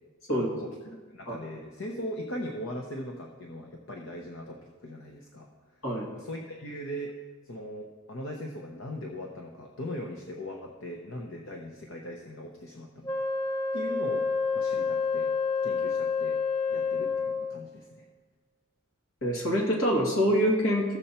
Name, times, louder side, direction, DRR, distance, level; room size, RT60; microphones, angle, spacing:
voice 1, 0.3-0.7 1.1-5.5 6.1-7.1 7.5-13.1 13.7-14.3 14.5-15.3 15.6-16.4 16.7-18.0, equal, 70° left, 1 dB, 0.9 m, -39 dB
Wind instrument woodwind instrument, 13.0-17.7, left 5 dB, 20° left, 1.0 m, -28 dB
voice 2, 19.2-21.0, equal, 85° left, -2 dB, 2.3 m, -25 dB
14.5 x 6.8 x 4.3 m, 1.4 s
head